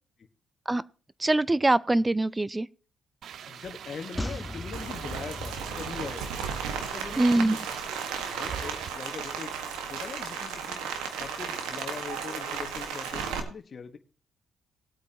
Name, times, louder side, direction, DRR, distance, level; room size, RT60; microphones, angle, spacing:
voice 1, 1.2-2.7 7.2-7.6, right 2 dB, 20° right, 0.5 m, -23 dB
sound 1, 3.2-8.9, right 8 dB, 65° right, 0.6 m, -42 dB
voice 2, 3.5-6.3 6.9-7.6 8.3-9.6 9.9-10.8 11.2-14.0, left 6 dB, 50° left, 1.5 m, -41 dB
sound 2, 4.2-7.6 7.9-8.0, left 1 dB, 10° left, 1.4 m, -39 dB
Rain, 4.7-13.4, right 6 dB, 85° right, 1.6 m, -35 dB
19.0 x 8.4 x 3.0 m
supercardioid pair, 55°, 0 cm